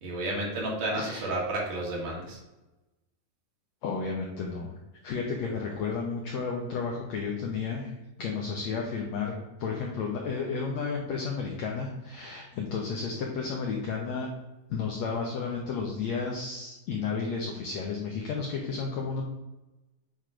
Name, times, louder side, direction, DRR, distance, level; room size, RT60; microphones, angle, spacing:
voice 1, 0.0-2.4, right 2 dB, 65° right, -3 dB, 3.1 m, -31 dB
voice 2, 1.0-1.3 3.8-4.7 5.0-9.3 9.6-14.3 14.7-19.2, left 5 dB, 75° left, 0 dB, 1.6 m, -32 dB
8.8 x 3.1 x 4.9 m, 1.0 s
omnidirectional pair, 4.2 m